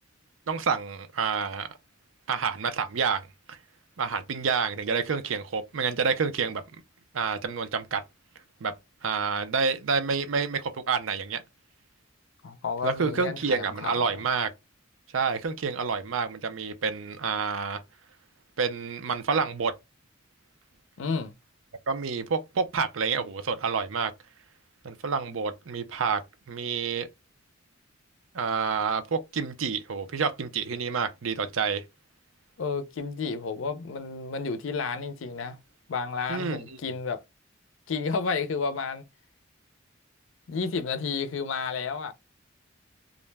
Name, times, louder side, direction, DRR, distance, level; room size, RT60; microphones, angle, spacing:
voice 1, 0.5-1.7 2.3-3.6 4.0-6.6 7.1-8.0 8.6-8.7 9.0-11.4 12.8-14.5 15.1-17.8 18.6-19.7 21.9-24.1 24.8-26.2 26.5-27.1 28.3-31.8 36.3-36.8, right 5 dB, 75° right, 0.5 m, -28 dB
voice 2, 12.4-14.0 21.0-21.3 32.6-35.6 35.9-37.2 37.9-39.0 40.5-42.1, left 5 dB, 75° left, 0.5 m, -31 dB
2.5 x 2.1 x 3.2 m
head